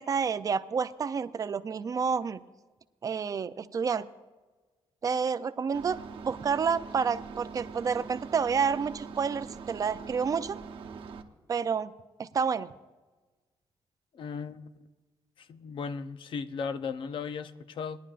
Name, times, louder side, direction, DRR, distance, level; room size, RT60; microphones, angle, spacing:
voice 1, 0.0-2.4 3.0-4.1 5.0-10.6 11.5-11.9 12.2-12.7, right 6 dB, 35° right, 13 dB, 0.4 m, -29 dB
sound 1, 5.7-11.2, right 5 dB, 65° right, 0.9 m, -43 dB
voice 2, 14.1-14.7 15.4-18.0, left 5 dB, 55° left, 11 dB, 0.6 m, -36 dB
20.0 x 11.0 x 2.5 m, 1.3 s
cardioid pair, 145°, 10 cm